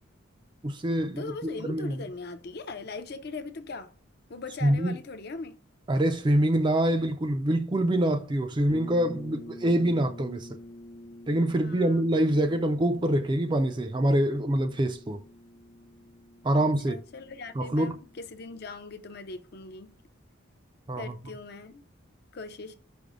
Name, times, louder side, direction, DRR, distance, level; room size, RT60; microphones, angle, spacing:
voice 1, 0.6-2.0 4.6-5.0 5.9-10.6 11.3-15.2 16.4-17.0 17.5-18.0 20.9-21.2, right 1 dB, 25° right, 0.4 m, -25 dB
voice 2, 1.2-3.9 4.3-5.6 11.6-12.0 16.6-18.0 18.3-19.9 21.0-21.8 22.3-22.8, left 3 dB, 50° left, 0.5 m, -40 dB
sound 1, 8.7-18.4, left 1 dB, 75° left, 0.9 m, -48 dB
5.1 x 2.1 x 4.8 m
head